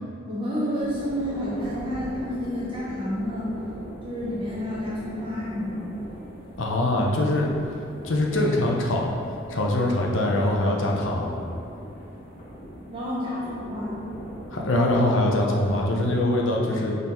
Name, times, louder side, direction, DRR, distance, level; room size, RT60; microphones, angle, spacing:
voice 1, 0.3-3.5 4.0-6.0 12.9-14.0, equal, 25° right, -8 dB, 0.9 m, -30 dB
sound 1, 0.8-16.0, equal, 45° left, 1.4 m, -41 dB
voice 2, 6.6-7.5 8.0-9.1 9.5-11.3 14.5-17.0, left 1 dB, 80° left, -1 dB, 0.8 m, -23 dB
5.4 x 4.0 x 4.3 m, 2.6 s
head